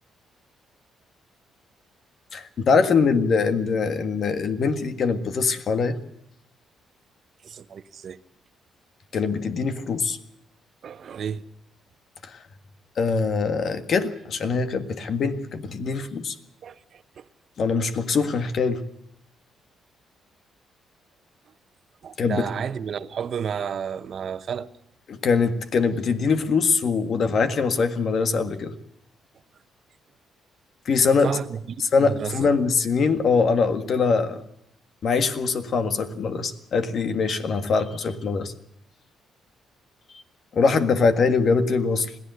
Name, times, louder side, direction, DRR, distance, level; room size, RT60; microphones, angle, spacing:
voice 1, 2.3-6.0 9.1-10.2 12.3-12.4 13.0-16.3 17.6-18.8 22.2-22.4 25.1-28.8 30.8-31.3 31.9-34.4 35.0-38.5 40.5-42.1, left 4 dB, 55° left, 1.7 m, -23 dB
voice 2, 7.4-8.2 10.8-11.4 16.6-17.2 22.0-24.7 31.1-32.5, right 7 dB, 55° right, 1.1 m, -32 dB
21.5 x 15.0 x 7.9 m
cardioid pair, 90°, 0 cm